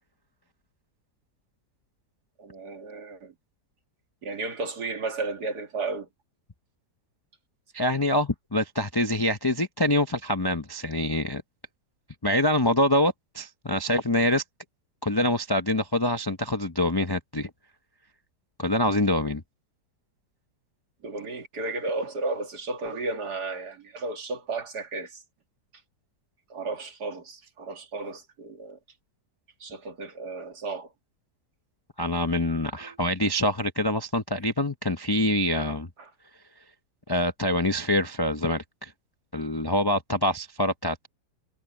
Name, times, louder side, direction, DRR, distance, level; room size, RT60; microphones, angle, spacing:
voice 1, 2.4-3.3 4.2-6.1 21.0-25.1 26.5-28.8 29.6-30.9 32.8-32.9 36.0-36.1, right 3 dB, 70° right, 2.7 m, -33 dB
voice 2, 7.7-11.4 12.2-14.4 15.0-17.5 18.6-19.4 32.0-35.9 37.1-38.9 39.3-41.1, left 1 dB, 25° left, 0.5 m, -25 dB
omnidirectional pair, 1.8 m